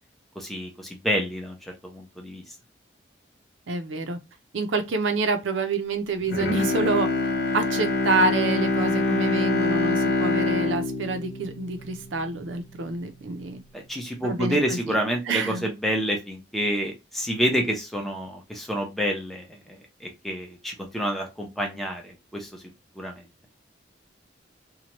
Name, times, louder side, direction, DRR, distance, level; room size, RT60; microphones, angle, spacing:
voice 1, 0.4-2.5 13.7-22.6 23.0-23.2, equal, ahead, 0.6 m, -28 dB
voice 2, 3.7-4.2 4.5-13.6 14.2-14.9 15.3-15.7, right 3 dB, 80° right, 0.5 m, -27 dB
Bowed string instrument, 6.2-12.5 12.9-13.0, left 2 dB, 55° left, 0.5 m, -25 dB
2.8 x 2.2 x 2.9 m
head